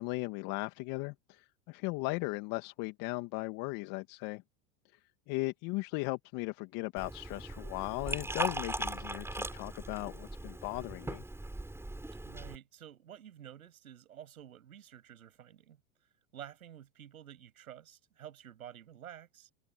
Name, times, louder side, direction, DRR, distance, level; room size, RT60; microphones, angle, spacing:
voice 1, 0.0-4.4 5.3-11.2, left 24 dB, 55° left, 1.9 m, -37 dB
Liquid, 7.0-12.6, right 2 dB, 5° right, 7.2 m, -39 dB
voice 2, 12.2-15.8 16.3-19.5, right 10 dB, 85° right, 7.6 m, -50 dB
hypercardioid pair, 100°, 41 cm